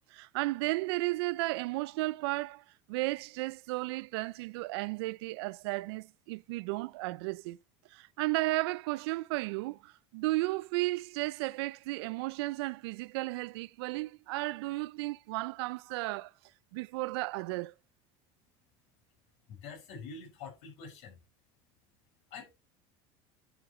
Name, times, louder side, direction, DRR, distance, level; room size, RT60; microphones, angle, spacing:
voice 1, 0.1-7.6 7.9-16.3 16.7-17.7, right 21 dB, 85° right, 0.4 m, -34 dB
voice 2, 19.5-21.2 22.3-22.6, left 5 dB, 60° left, 5.8 m, -46 dB
10.5 x 6.9 x 3.1 m
cardioid pair, 140°, 13 cm